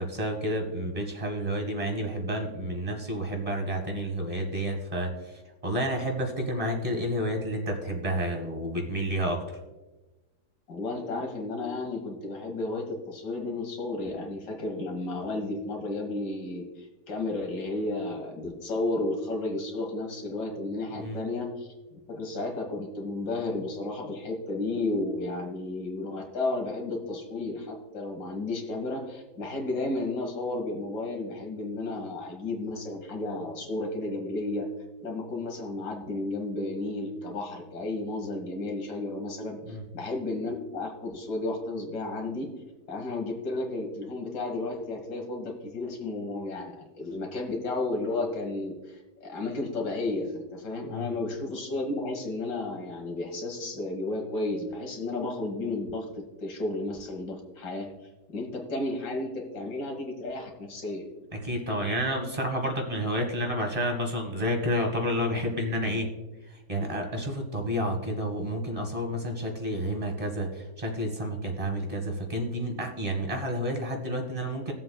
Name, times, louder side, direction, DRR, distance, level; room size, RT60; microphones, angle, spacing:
voice 1, 0.0-9.6 21.0-21.2 39.6-39.8 50.9-51.1 61.3-66.1 66.5-74.7, equal, 20° right, 3 dB, 1.6 m, -30 dB
voice 2, 10.7-34.7 35.0-42.5 42.9-56.0 56.4-57.9 58.3-61.0, left 2 dB, 75° left, 0 dB, 2.2 m, -33 dB
19.5 x 7.5 x 2.3 m, 1.1 s
omnidirectional pair, 1.8 m